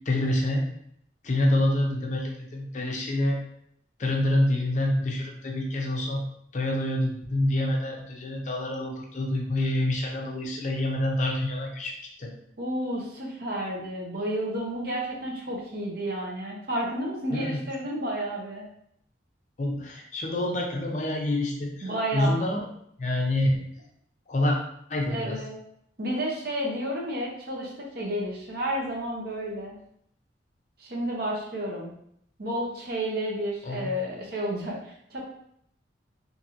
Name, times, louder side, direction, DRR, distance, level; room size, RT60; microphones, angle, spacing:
voice 1, 0.1-0.6 1.2-3.4 4.0-6.2 6.5-11.9 12.2-12.3 17.3-17.6 19.6-22.6 23.0-23.5 24.3-24.6 24.9-25.4 33.7-33.9, left 1 dB, 40° left, 0 dB, 0.4 m, -27 dB
voice 2, 12.6-18.6 21.8-22.4 25.1-25.6 26.0-29.8 30.8-31.9 32.4-35.2, right 1 dB, 55° right, -2 dB, 0.7 m, -31 dB
2.8 x 2.6 x 2.5 m, 0.71 s
head